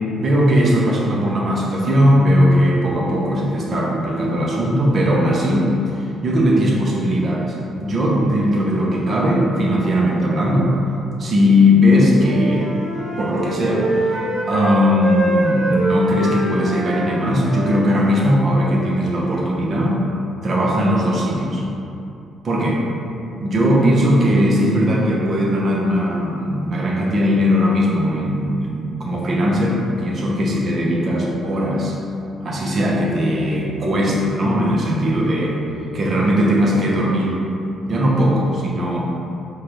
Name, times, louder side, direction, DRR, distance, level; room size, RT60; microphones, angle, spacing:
voice 1, 0.1-5.7 6.2-10.8 11.2-12.7 13.2-14.2 14.5-20.0 20.4-21.6 22.4-22.8 23.4-31.9 32.4-35.6 35.9-37.4 37.8-39.0, equal, 45° right, -3 dB, 0.7 m, -18 dB
Wind instrument woodwind instrument, 11.9-14.8 15.0-18.3, right 1 dB, 70° right, 1.0 m, -25 dB
4.7 x 2.3 x 3.0 m, 2.7 s
cardioid pair, 90°, 0 cm